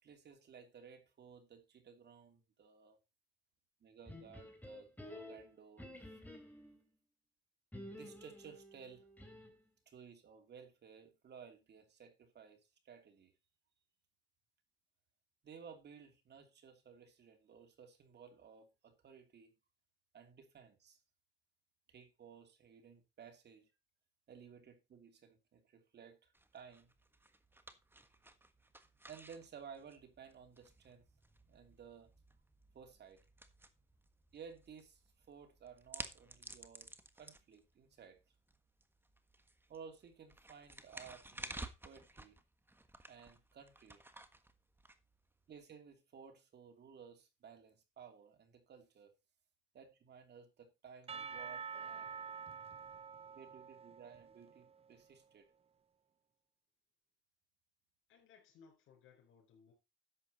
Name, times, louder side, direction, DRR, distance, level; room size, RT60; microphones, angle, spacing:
voice 1, 0.0-3.0 3.8-5.9 7.9-9.1 9.9-13.3 15.4-19.5 20.1-21.0 21.9-23.7 24.3-26.9 29.1-31.0 31.5-32.1 32.7-33.2 34.3-38.2 39.7-42.4 43.1-44.0 45.5-49.1 49.7-52.3 53.3-55.5, right 7 dB, 60° right, 2.9 m, -56 dB
sound 1, 4.1-6.8 7.7-9.7, left 1 dB, 10° left, 3.4 m, -52 dB
sound 2, 26.3-45.6, right 2 dB, 10° right, 1.4 m, -54 dB
Percussion / Church bell, 51.1-55.0, right 6 dB, 30° right, 0.5 m, -48 dB
voice 2, 58.1-59.7, left 6 dB, 85° left, 4.0 m, -63 dB
11.5 x 7.6 x 4.1 m
cardioid pair, 90°, 20 cm